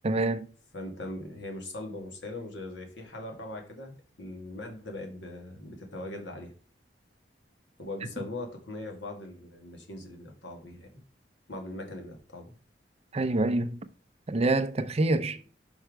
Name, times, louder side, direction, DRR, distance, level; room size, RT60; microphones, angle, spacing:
voice 1, 0.0-0.5 13.1-13.8 14.3-15.4, right 2 dB, 35° right, 0.5 m, -26 dB
voice 2, 0.7-6.5 7.8-11.0 11.5-12.5, left 1 dB, 75° left, 2.0 m, -40 dB
5.7 x 4.5 x 4.9 m
head